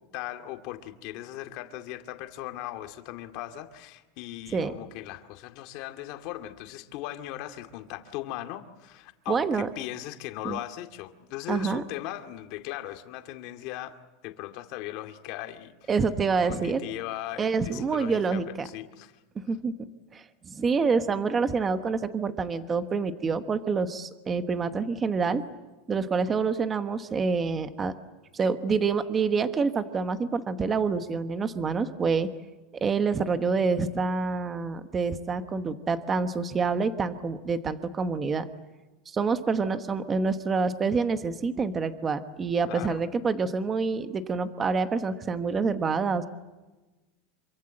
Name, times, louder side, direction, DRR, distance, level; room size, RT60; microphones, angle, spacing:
voice 1, 0.1-15.9 16.4-19.2 42.7-43.0, left 14 dB, 45° left, 7 dB, 2.3 m, -38 dB
voice 2, 9.3-9.7 10.4-10.6 11.5-11.8 15.9-16.8 17.4-18.7 19.3-19.7 20.1-25.4 25.9-27.9 28.3-32.3 32.7-38.4 39.1-46.3, right 4 dB, 15° right, 10 dB, 1.1 m, -27 dB
27.0 x 24.5 x 7.8 m, 1.1 s
supercardioid pair, 170°, 0 cm